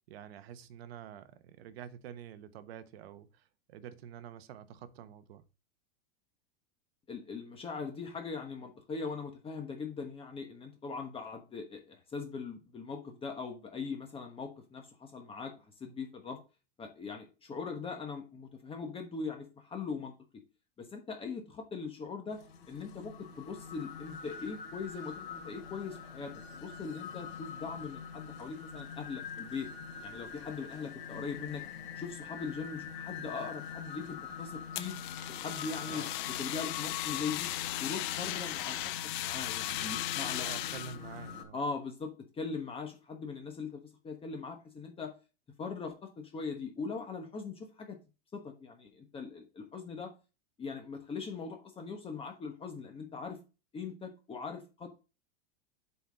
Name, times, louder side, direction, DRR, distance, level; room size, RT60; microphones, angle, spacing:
voice 1, 0.1-5.4 35.9-36.1 40.4-41.6, right 9 dB, 75° right, 1.1 m, -48 dB
voice 2, 7.1-16.4 16.8-20.1 20.8-22.4 22.7-29.7 30.0-31.6 32.0-35.0 35.3-37.5 37.8-40.5 41.5-45.1 45.6-48.0 48.3-50.1 50.6-53.4 53.7-54.9, left 5 dB, 20° left, 1.2 m, -41 dB
sound 1, 22.3-41.4, left 6 dB, 75° left, 3.3 m, -44 dB
Fire, 34.7-41.0, left 15 dB, 55° left, 0.8 m, -37 dB
7.9 x 4.2 x 5.2 m
supercardioid pair, 145°, 31 cm